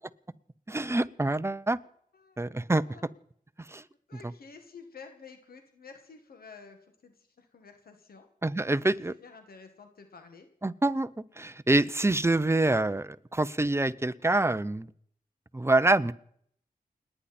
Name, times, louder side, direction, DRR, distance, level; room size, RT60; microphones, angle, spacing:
voice 1, 0.7-1.8 2.4-2.8 3.7-3.8 8.4-9.1 10.6-11.1 11.4-14.9 15.5-16.1, right 2 dB, 15° right, 15 dB, 0.7 m, -26 dB
voice 2, 4.1-8.3 8.8-10.5, left 5 dB, 90° left, 6 dB, 1.9 m, -51 dB
29.5 x 10.0 x 4.3 m, 0.66 s
wide cardioid pair, 65°, 15 cm